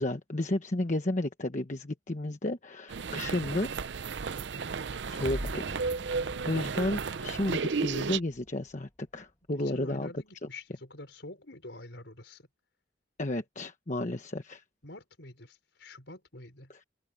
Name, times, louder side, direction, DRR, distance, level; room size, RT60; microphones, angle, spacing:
voice 1, 0.0-3.7 5.1-5.6 6.4-10.1 13.2-14.6 16.7-16.8, left 1 dB, 40° left, 1.2 m, -32 dB
sound 1, 2.9-8.2, right 5 dB, 70° right, 0.6 m, -33 dB
sound 2, 5.2-8.5, equal, 15° left, 1.9 m, -43 dB
voice 2, 9.5-12.5 14.8-16.7, left 2 dB, 70° left, 5.1 m, -47 dB
head